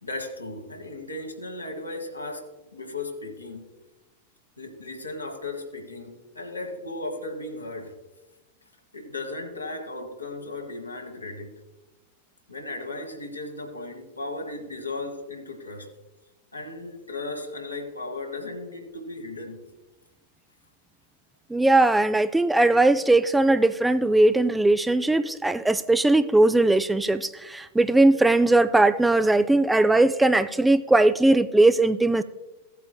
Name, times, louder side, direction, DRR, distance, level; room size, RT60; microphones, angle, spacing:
voice 1, 0.0-3.7 4.6-7.9 8.9-11.6 12.5-15.9 16.5-19.6, left 2 dB, 85° left, 3 dB, 1.3 m, -36 dB
voice 2, 21.5-32.2, right 2 dB, 5° right, 13 dB, 0.3 m, -19 dB
16.5 x 8.3 x 2.2 m, 1.1 s
figure-of-eight pair, 90°, 0 cm